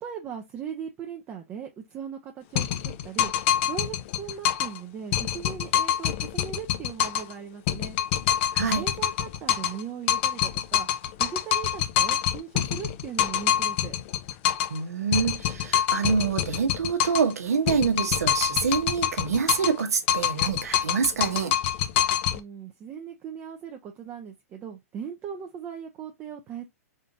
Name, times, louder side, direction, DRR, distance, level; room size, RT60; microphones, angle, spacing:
voice 1, 0.0-8.0 8.6-10.9 11.2-13.9 22.3-26.6, right 8 dB, 25° right, 0.7 m, -39 dB
sound 1, 2.6-4.8 5.1-7.3 7.7-9.8 10.1-14.8 15.1-17.3 17.7-19.8 20.1-22.4, left 10 dB, 50° left, 0.6 m, -26 dB
voice 2, 8.5-8.8 14.7-21.5, right 5 dB, 80° right, 1.1 m, -26 dB
3.8 x 3.7 x 2.7 m
hypercardioid pair, 120°, 8 cm